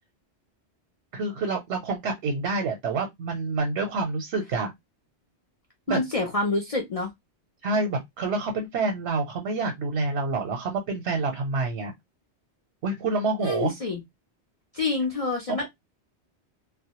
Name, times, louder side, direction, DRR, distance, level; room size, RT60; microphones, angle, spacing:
voice 1, 1.1-4.7 5.9-6.0 7.6-11.9 12.8-13.7 15.5-15.7, right 3 dB, 75° right, 0.9 m, -27 dB
voice 2, 5.9-7.1 13.4-14.0 14.7-15.7, left 3 dB, 45° left, 0.4 m, -27 dB
2.2 x 2.1 x 2.8 m
omnidirectional pair, 1.1 m